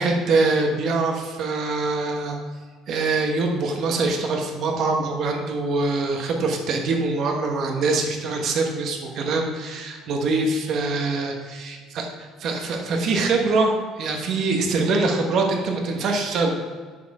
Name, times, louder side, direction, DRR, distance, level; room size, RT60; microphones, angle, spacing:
voice 1, 0.0-2.4 2.9-12.1 12.4-13.7 14.0-16.5, right 3 dB, 50° right, 2 dB, 1.2 m, -23 dB
10.0 x 4.4 x 4.8 m, 1.6 s
cardioid pair, 155°, 0 cm